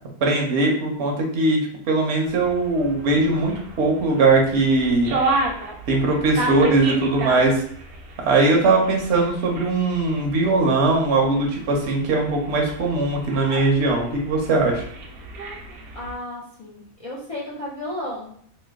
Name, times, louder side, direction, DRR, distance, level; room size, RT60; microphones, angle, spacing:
voice 1, 0.2-5.2 5.9-7.6 8.2-14.8, right 3 dB, 55° right, 0 dB, 0.9 m, -20 dB
sound 1, 2.3-16.2, right 2 dB, 80° right, 1.1 m, -32 dB
voice 2, 15.9-18.4, left 1 dB, 60° left, -5 dB, 0.3 m, -33 dB
2.9 x 2.2 x 3.4 m, 0.63 s
omnidirectional pair, 1.5 m